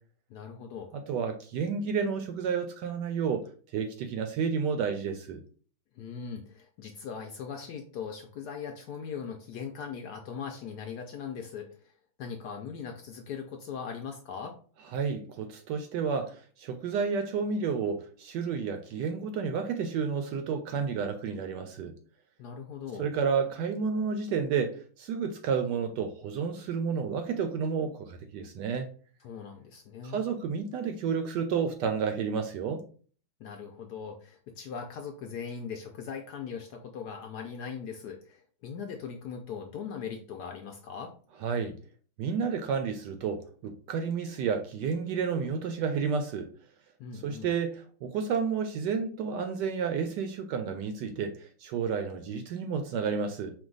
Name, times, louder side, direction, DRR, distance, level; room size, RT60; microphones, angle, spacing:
voice 1, 0.3-0.9 6.0-11.9 12.2-14.6 22.4-23.1 29.2-30.3 33.4-41.1 47.0-47.5, left 6 dB, 75° left, 1.0 m, -40 dB
voice 2, 0.9-3.4 3.7-5.4 14.9-21.9 23.0-28.9 30.0-32.8 41.4-41.8 42.2-46.5 47.1-53.5, right 6 dB, 75° right, 1.1 m, -31 dB
4.6 x 2.3 x 3.8 m
omnidirectional pair, 2.2 m